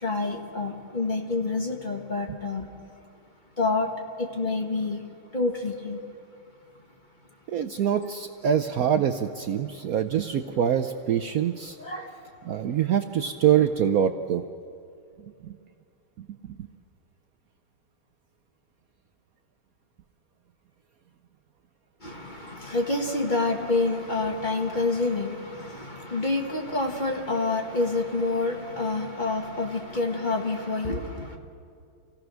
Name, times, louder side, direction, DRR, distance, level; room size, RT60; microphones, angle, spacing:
voice 1, 0.0-2.7 3.6-3.9 4.2-5.0 5.3-6.0 11.8-12.1 22.0-31.4, left 3 dB, 25° left, 2 dB, 1.5 m, -28 dB
voice 2, 7.5-11.8 12.4-14.4 15.5-15.6, right 9 dB, 90° right, 8 dB, 0.7 m, -24 dB
27.5 x 17.0 x 6.3 m, 2.5 s
omnidirectional pair, 2.3 m